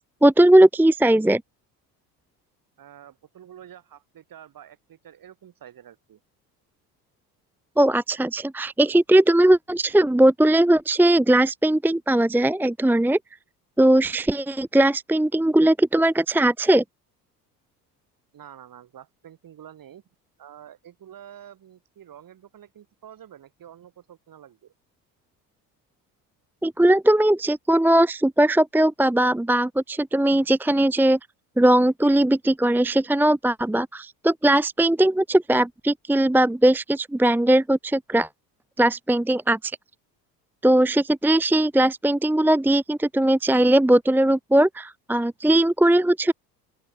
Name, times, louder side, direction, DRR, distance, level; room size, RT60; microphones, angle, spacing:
voice 1, 0.2-1.4 7.8-13.2 13.8-16.8 26.6-31.2 31.6-38.3 38.8-39.8 40.6-46.3, right 1 dB, 5° right, 0.9 m, -19 dB
voice 2, 2.8-6.2 18.3-20.0 20.4-24.7 30.3-30.5, right 10 dB, 40° right, 7.6 m, -47 dB
open air
figure-of-eight pair, 65°, 50 cm